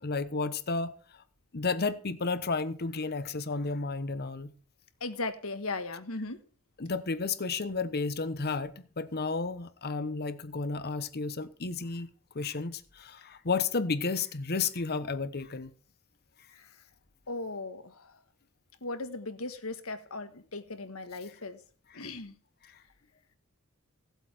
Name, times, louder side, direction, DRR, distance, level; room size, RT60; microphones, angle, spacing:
voice 1, 0.0-0.9 1.5-4.5 6.8-12.1 12.3-15.7 21.9-22.0 22.6-22.7, left 4 dB, 50° left, 1.0 m, -32 dB
voice 2, 5.0-6.4 17.3-18.1 18.8-21.6 21.9-22.3, left 3 dB, 70° left, 1.5 m, -37 dB
17.0 x 8.1 x 4.4 m
head